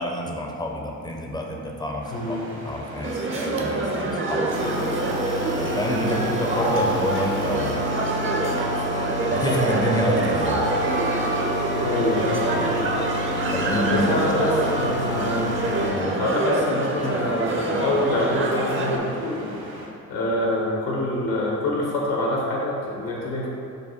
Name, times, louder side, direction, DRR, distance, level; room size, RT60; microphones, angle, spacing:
voice 1, 0.0-2.4 2.6-4.5 5.6-8.0 9.3-10.6 13.5-14.1 15.9-16.2, left 1 dB, 10° left, 1 dB, 0.6 m, -28 dB
sound 1, 2.0-19.9, equal, 60° right, 1.2 m, -39 dB
voice 2, 2.1-2.4 6.0-6.2 11.8-12.6 13.7-15.6 16.2-19.4 20.1-23.5, left 1 dB, 70° left, -3 dB, 1.2 m, -26 dB
sound 2, 3.0-19.0, right 2 dB, 30° right, 0.6 m, -26 dB
sound 3, 4.5-15.9, equal, 80° right, 1.1 m, -29 dB
5.0 x 2.2 x 4.3 m, 2.4 s
hypercardioid pair, 50°, 42 cm